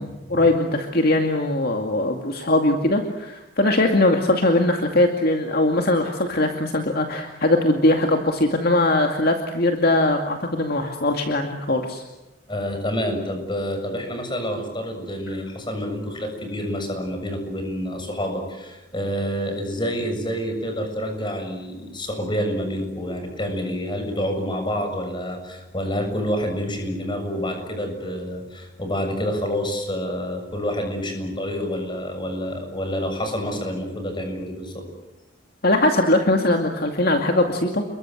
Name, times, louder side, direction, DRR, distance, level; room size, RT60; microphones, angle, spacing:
voice 1, 0.0-12.0 35.6-37.8, left 1 dB, 50° left, 3 dB, 2.3 m, -21 dB
voice 2, 12.5-34.9, equal, 25° left, 5 dB, 6.9 m, -28 dB
29.5 x 22.5 x 7.9 m, 1.0 s
head